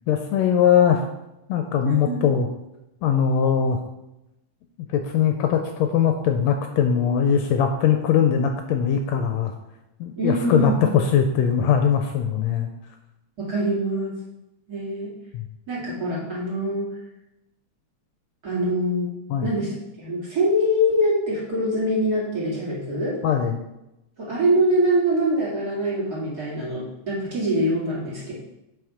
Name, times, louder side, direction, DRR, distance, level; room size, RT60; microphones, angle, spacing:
voice 1, 0.1-1.0 1.5-2.5 3.0-3.8 4.9-9.5 10.0-12.7 15.3-15.4 19.3-19.5 23.2-23.6, left 8 dB, 75° left, 5 dB, 1.7 m, -21 dB
voice 2, 1.8-2.2 10.2-10.9 13.4-14.1 14.7-15.1 15.7-16.9 18.4-19.1 19.4-23.2 24.2-28.3, equal, 35° right, -6 dB, 2.4 m, -24 dB
7.9 x 4.9 x 4.9 m, 0.90 s
omnidirectional pair, 3.3 m